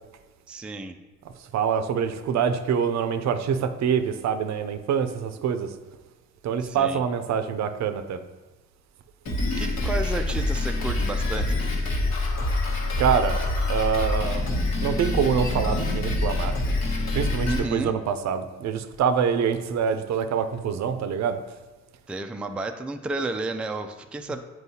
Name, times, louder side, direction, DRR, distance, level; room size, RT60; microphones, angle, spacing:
voice 1, 0.5-0.9 6.6-7.0 9.6-11.6 17.5-18.0 22.1-24.4, right 2 dB, 5° right, 6 dB, 0.3 m, -32 dB
voice 2, 1.5-5.7 6.4-8.2 13.0-13.4 13.7-14.5 14.8-16.5 17.1-21.4, right 7 dB, 65° right, 10 dB, 0.5 m, -25 dB
Drum kit, 9.2-17.6, left 2 dB, 60° left, 1.3 m, -26 dB
7.9 x 4.5 x 2.8 m, 1.2 s
cardioid pair, 90°, 30 cm